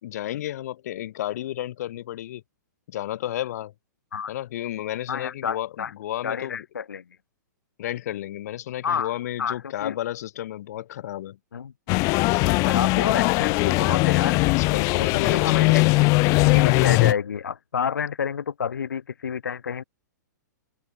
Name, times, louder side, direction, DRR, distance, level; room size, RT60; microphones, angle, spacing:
voice 1, 0.0-2.4 2.9-3.7 4.3-6.6 7.8-11.4 14.6-16.0, left 13 dB, 60° left, 2.4 m, -32 dB
voice 2, 5.1-5.9 6.2-7.0 8.8-9.1 9.4-10.0 11.5-11.7 12.4-14.4 14.9-16.0 16.4-19.8, left 7 dB, 75° left, 2.5 m, -29 dB
sound 1, 11.9-17.1, left 26 dB, 35° left, 0.5 m, -20 dB
hypercardioid pair, 120°, 10 cm